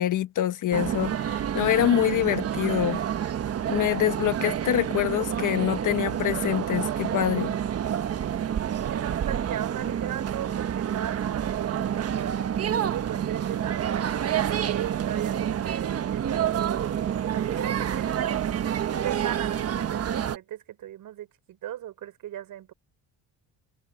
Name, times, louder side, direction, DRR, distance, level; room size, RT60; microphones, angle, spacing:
voice 1, 0.0-3.0 3.7-7.5, left 12 dB, 55° left, 1.4 m, -25 dB
sound 1, 0.7-20.4, right 9 dB, 40° right, 1.3 m, -28 dB
voice 2, 8.6-12.4 12.9-18.5 19.0-22.7, right 12 dB, 60° right, 5.1 m, -37 dB
cardioid pair, 125°, 37 cm